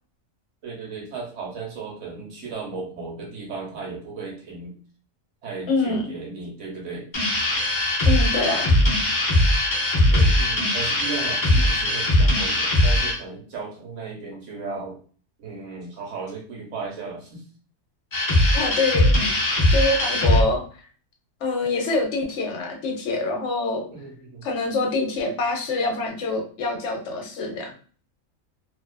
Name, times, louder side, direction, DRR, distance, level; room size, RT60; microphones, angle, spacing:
voice 1, 0.6-4.8 5.4-7.1 10.1-15.0 15.4-17.4 23.9-24.4, right 4 dB, 70° right, 0 dB, 1.1 m, -35 dB
voice 2, 5.7-6.1 8.1-8.7 18.5-19.4 19.7-20.6 21.4-23.9 24.4-27.7, left 3 dB, 65° left, 1 dB, 0.9 m, -25 dB
sound 1, 7.1-13.2 18.1-20.4, left 1 dB, 45° left, 0.4 m, -20 dB
2.5 x 2.3 x 2.2 m, 0.42 s
omnidirectional pair, 1.4 m